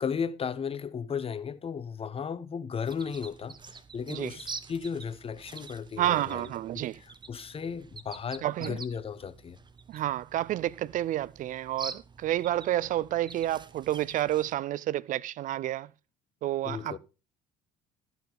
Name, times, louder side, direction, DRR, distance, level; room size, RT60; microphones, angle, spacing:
voice 1, 0.0-6.8 7.3-9.6 16.6-17.0, left 6 dB, 30° left, 1.0 m, -35 dB
sound 1, 2.8-14.5, right 5 dB, 25° right, 1.2 m, -47 dB
voice 2, 6.0-7.0 8.4-8.8 9.9-15.9 16.4-17.0, right 13 dB, 50° right, 0.5 m, -30 dB
14.0 x 6.0 x 5.4 m
hypercardioid pair, 60°, 18 cm